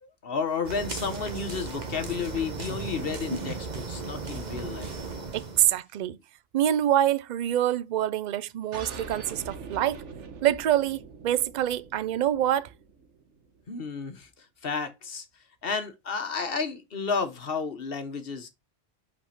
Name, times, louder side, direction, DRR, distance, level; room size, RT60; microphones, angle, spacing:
voice 1, 0.0-5.0 13.7-15.2 15.6-18.5, left 5 dB, 55° left, 1.2 m, -32 dB
sound 1, 0.6-5.7, right 4 dB, 40° right, 1.2 m, -35 dB
voice 2, 5.3-6.2 6.5-10.0 10.4-12.7, right 11 dB, 60° right, 0.5 m, -25 dB
sound 2, 8.7-13.8, right 4 dB, 80° right, 1.4 m, -43 dB
5.4 x 4.2 x 5.7 m
omnidirectional pair, 1.2 m